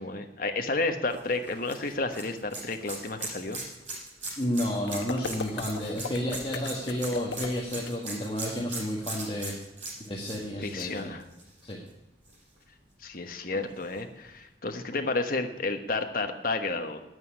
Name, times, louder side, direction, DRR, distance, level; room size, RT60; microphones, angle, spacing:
voice 1, 0.0-3.6 10.6-11.2 13.0-17.0, left 3 dB, 50° left, 6 dB, 1.3 m, -31 dB
sound 1, 1.1-11.9 12.3-12.4 13.8-13.9, right 2 dB, 35° right, 6.1 m, -40 dB
voice 2, 4.4-9.5 10.0-11.1 11.6-11.8, equal, 25° left, -3 dB, 1.7 m, -31 dB
sound 2, 4.9-7.9, left 4 dB, 75° left, 1.1 m, -37 dB
9.6 x 9.3 x 9.9 m, 0.94 s
head